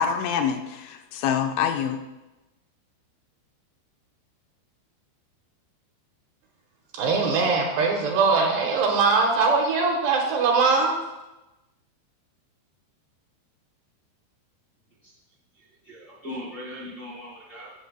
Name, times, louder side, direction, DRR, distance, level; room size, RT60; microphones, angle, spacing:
voice 1, 0.0-2.0, left 7 dB, 80° left, 5 dB, 2.9 m, -25 dB
voice 2, 6.9-11.0, right 4 dB, 75° right, 0 dB, 2.8 m, -21 dB
voice 3, 15.5-17.7, left 1 dB, 40° left, -5 dB, 1.4 m, -39 dB
17.5 x 6.6 x 2.2 m, 1.0 s
omnidirectional pair, 5.4 m